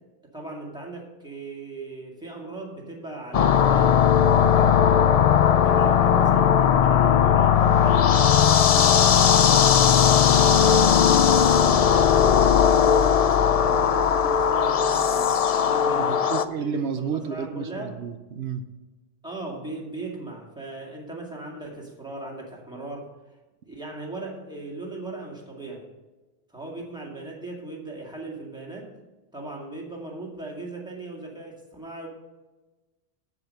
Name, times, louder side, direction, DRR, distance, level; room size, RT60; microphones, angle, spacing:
voice 1, 0.3-4.0 5.4-9.7 10.3-16.4 16.7-18.0 19.2-23.1 23.6-25.9 26.5-28.9 29.3-32.1, right 2 dB, 5° right, -3 dB, 2.1 m, -38 dB
sound 1, 3.3-16.4, left 8 dB, 55° left, 0.4 m, -18 dB
voice 2, 4.4-4.8 10.2-10.4 15.9-18.6, right 6 dB, 90° right, 9 dB, 1.0 m, -31 dB
8.2 x 7.4 x 6.5 m, 1.1 s
omnidirectional pair, 1.0 m